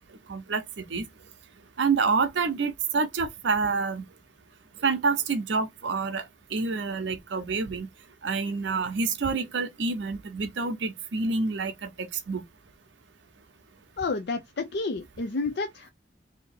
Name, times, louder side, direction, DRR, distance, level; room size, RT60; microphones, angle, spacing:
voice 1, 0.3-1.0 1.8-4.0 4.8-6.2 6.5-7.9 8.2-12.4, right 4 dB, 75° right, 0.6 m, -27 dB
voice 2, 14.0-15.9, left 3 dB, 60° left, 0.5 m, -30 dB
2.8 x 2.8 x 4.3 m
head